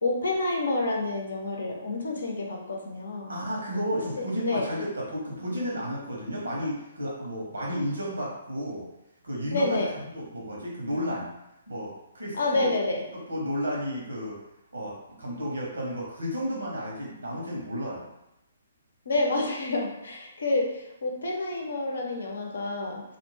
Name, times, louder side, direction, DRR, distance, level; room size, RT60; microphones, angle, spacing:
voice 1, 0.0-3.3 4.2-4.7 9.5-9.9 12.4-13.0 19.1-23.0, left 2 dB, 70° left, 0 dB, 0.7 m, -28 dB
voice 2, 3.3-8.9 9.2-11.3 11.7-14.4 14.7-18.0, equal, 80° right, -3 dB, 1.0 m, -32 dB
2.6 x 2.1 x 3.2 m, 0.88 s
figure-of-eight pair, 130°, 0 cm